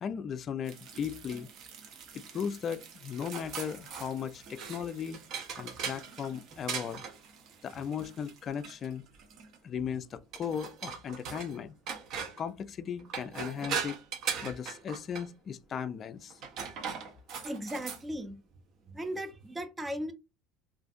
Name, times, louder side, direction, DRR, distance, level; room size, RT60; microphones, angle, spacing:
voice 1, 0.0-1.5 2.1-5.2 5.6-7.0 7.6-9.1 9.6-11.7 12.4-14.0 14.4-16.4, left 7 dB, 40° left, 0.3 m, -37 dB
sound 1, 0.7-9.6 10.3-11.6 11.9-12.5 13.0-15.3 16.3-18.0, right 6 dB, 60° right, 0.7 m, -40 dB
voice 2, 17.4-18.4 18.9-20.1, equal, 15° right, 0.5 m, -37 dB
2.5 x 2.4 x 2.4 m
supercardioid pair, 100°, 0 cm